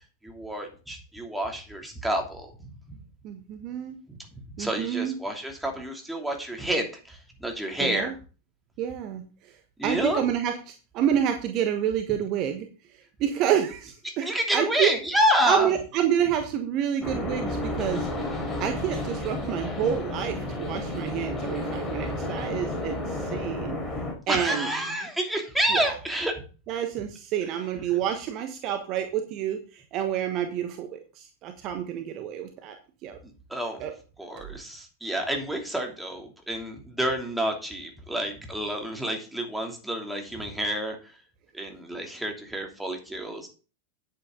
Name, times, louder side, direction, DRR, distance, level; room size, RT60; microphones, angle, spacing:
voice 1, 0.2-3.0 4.1-4.2 4.6-8.1 9.8-10.2 14.0-15.7 24.3-26.3 33.2-33.8 34.2-41.2 41.5-43.5, equal, 5° right, 1 dB, 2.9 m, -29 dB
voice 2, 3.2-4.0 4.6-5.1 7.8-8.1 8.8-9.2 9.8-12.7 13.2-14.9 15.5-18.1 18.6-23.8 24.3-24.7 25.7-25.9 26.7-32.8 33.0-33.2 33.8-33.9, right 9 dB, 40° right, 7 dB, 1.2 m, -28 dB
sound 1, 17.0-24.1, left 1 dB, 15° left, 4.3 m, -31 dB
9.6 x 8.9 x 3.8 m, 0.36 s
figure-of-eight pair, 90°, 0 cm